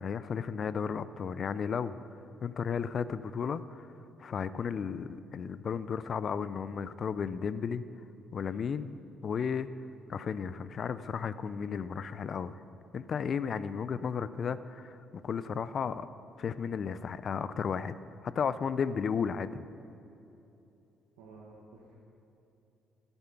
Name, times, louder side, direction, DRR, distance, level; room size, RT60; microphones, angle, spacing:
voice 1, 0.0-2.0 2.4-3.9 4.2-7.8 8.3-8.9 9.2-9.7 10.1-12.6 12.9-15.0 15.2-16.1 16.4-18.0 18.2-19.6, left 6 dB, 55° left, 15 dB, 0.4 m, -34 dB
voice 2, 21.2-22.0, right 3 dB, 90° right, -3 dB, 1.2 m, -52 dB
11.5 x 8.0 x 5.8 m, 2.9 s
supercardioid pair, 60°, 0 cm